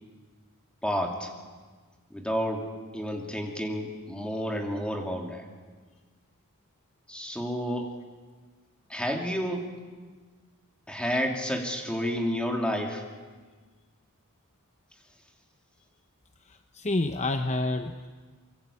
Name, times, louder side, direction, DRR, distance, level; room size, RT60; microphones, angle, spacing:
voice 1, 0.8-1.3 2.1-5.4 7.1-7.9 8.9-9.7 10.9-13.0, equal, 5° left, 2 dB, 2.8 m, -30 dB
voice 2, 16.4-18.1, left 2 dB, 30° left, 7 dB, 0.9 m, -29 dB
24.5 x 23.0 x 8.5 m, 1.5 s
head